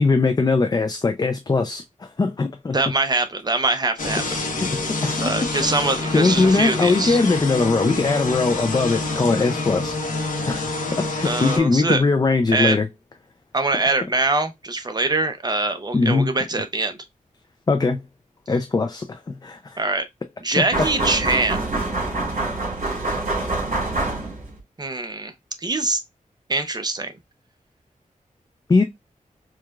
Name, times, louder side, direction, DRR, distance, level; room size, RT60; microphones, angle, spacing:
voice 1, 0.0-2.8 4.6-5.4 6.1-9.9 10.5-12.9 15.9-16.3 17.7-18.0 18.5-19.8 20.6-20.9 28.7-28.8, left 3 dB, 30° left, 0.4 m, -21 dB
voice 2, 2.7-4.2 5.2-7.2 11.2-12.0 12.5-12.8 13.5-17.0 19.8-20.0 20.4-21.6 24.8-25.3 25.6-26.0 26.5-27.1, right 3 dB, 30° right, 0.6 m, -23 dB
sound 1, 4.0-11.6, left 2 dB, 75° left, 0.9 m, -27 dB
sound 2, 20.7-24.6, right 2 dB, 65° right, 2.2 m, -25 dB
4.7 x 2.3 x 2.3 m
wide cardioid pair, 95°, 14 cm